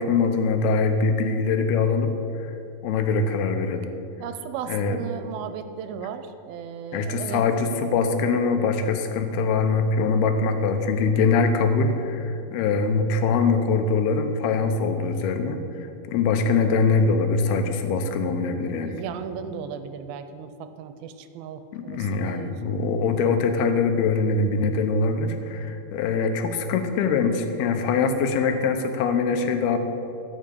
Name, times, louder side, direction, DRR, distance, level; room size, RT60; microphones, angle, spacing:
voice 1, 0.0-2.1 2.4-2.5 2.8-3.9 4.7-5.0 6.9-18.9 21.7-29.8, left 4 dB, 85° left, 7 dB, 2.8 m, -23 dB
voice 2, 4.2-7.4 18.8-22.5, right 8 dB, 85° right, 10 dB, 2.4 m, -36 dB
13.0 x 6.2 x 8.4 m, 2.7 s
omnidirectional pair, 4.4 m